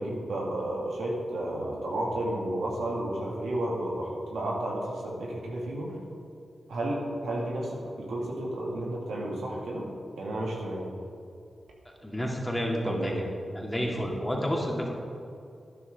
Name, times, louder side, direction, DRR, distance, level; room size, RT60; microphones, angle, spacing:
voice 1, 0.0-5.9 6.7-9.9 10.2-10.8 12.8-13.2, right 1 dB, 85° right, -3 dB, 2.1 m, -32 dB
voice 2, 12.0-13.1 13.5-14.9, equal, 10° left, -2 dB, 2.7 m, -30 dB
12.0 x 10.0 x 3.7 m, 2.5 s
supercardioid pair, 45°, 0 cm